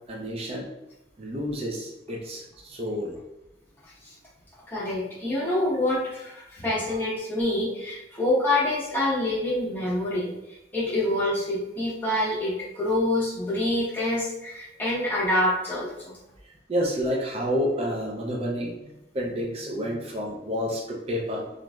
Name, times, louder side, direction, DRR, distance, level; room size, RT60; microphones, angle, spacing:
voice 1, 0.1-0.7 1.2-3.2 6.8-7.0 16.7-18.7 19.1-21.6, equal, 35° right, -1 dB, 0.5 m, -29 dB
voice 2, 4.7-10.3 10.7-16.1, left 1 dB, 10° left, -7 dB, 0.8 m, -26 dB
3.1 x 2.5 x 2.2 m, 0.93 s
head